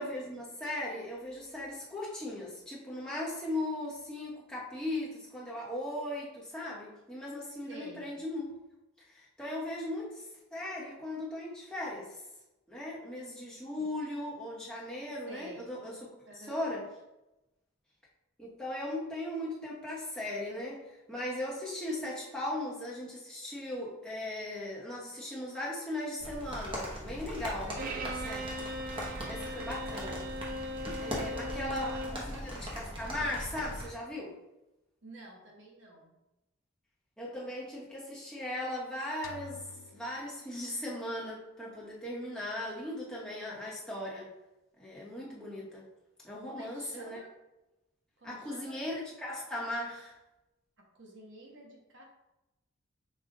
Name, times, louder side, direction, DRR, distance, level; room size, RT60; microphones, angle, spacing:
voice 1, 0.0-8.6 9.1-10.2 10.5-12.2 12.7-15.9 16.5-16.9 18.4-27.7 28.2-28.4 29.2-30.2 31.0-34.4 37.2-39.6 39.9-44.3 44.8-45.8 46.2-47.2 48.2-50.1, left 1 dB, 5° left, -6 dB, 1.0 m, -38 dB
voice 2, 7.7-8.1 13.8-13.9 15.3-15.7 16.2-16.6 27.6-28.0 29.4-30.2 31.1-32.6 35.0-36.2 46.4-47.3 48.2-48.8 50.9-52.1, right 1 dB, 60° right, -1 dB, 1.0 m, -50 dB
sound 1, 26.2-33.9, equal, 25° right, 0.9 m, -40 dB
Bowed string instrument, 27.8-32.3, equal, 40° right, 0.3 m, -39 dB
sound 2, 39.2-41.2, left 4 dB, 80° left, 0.4 m, -51 dB
5.3 x 2.4 x 3.7 m, 0.96 s
head